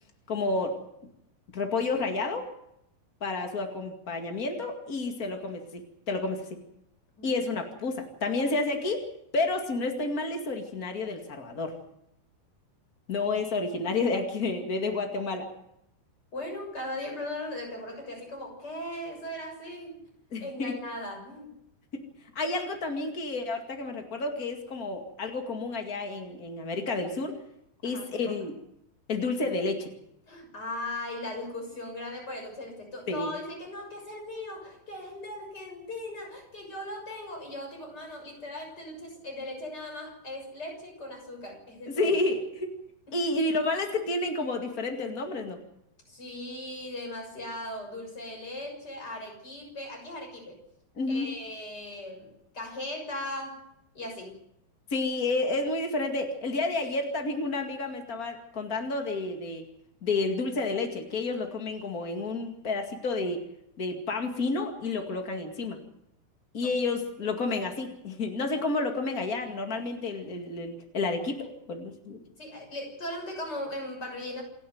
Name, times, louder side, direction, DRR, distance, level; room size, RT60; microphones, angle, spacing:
voice 1, 0.3-0.8 1.5-2.5 3.2-6.6 7.2-9.0 9.3-11.7 13.1-15.5 20.3-20.7 22.3-27.3 27.8-28.5 29.1-29.9 33.1-33.3 41.8-42.7 43.1-45.6 51.0-51.3 54.9-59.6 60.0-63.4 63.8-65.8 66.5-72.2, left 3 dB, 70° left, 4 dB, 0.8 m, -30 dB
voice 2, 16.3-19.9 20.4-21.5 27.8-28.4 30.3-42.2 43.1-43.2 46.1-50.6 51.1-53.6 53.9-54.4 66.6-66.7 67.2-67.3 72.4-74.4, left 1 dB, 20° left, 2 dB, 6.7 m, -38 dB
28.0 x 11.0 x 9.4 m, 0.81 s
omnidirectional pair, 5.5 m